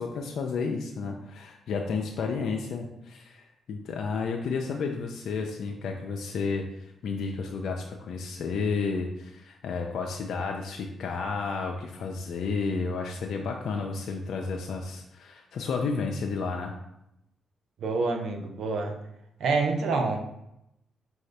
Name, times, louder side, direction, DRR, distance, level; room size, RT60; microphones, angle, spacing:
voice 1, 0.0-16.7, left 4 dB, 75° left, 1 dB, 0.4 m, -32 dB
voice 2, 17.8-19.0 19.4-20.2, right 3 dB, 75° right, 3 dB, 0.6 m, -27 dB
4.7 x 2.7 x 3.2 m, 0.83 s
supercardioid pair, 60°, 0 cm